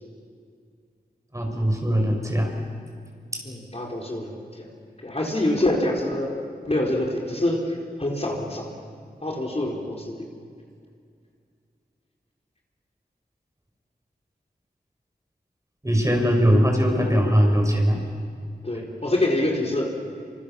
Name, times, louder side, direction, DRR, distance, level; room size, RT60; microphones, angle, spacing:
voice 1, 1.3-2.5 3.3-3.4 15.8-18.0, equal, 20° right, 2 dB, 5.3 m, -20 dB
voice 2, 3.4-4.7 5.0-6.4 6.6-8.7 9.2-10.3 18.6-19.9, left 1 dB, 40° left, -1 dB, 4.6 m, -26 dB
28.5 x 26.5 x 7.2 m, 2.3 s
wide cardioid pair, 75°, 17 cm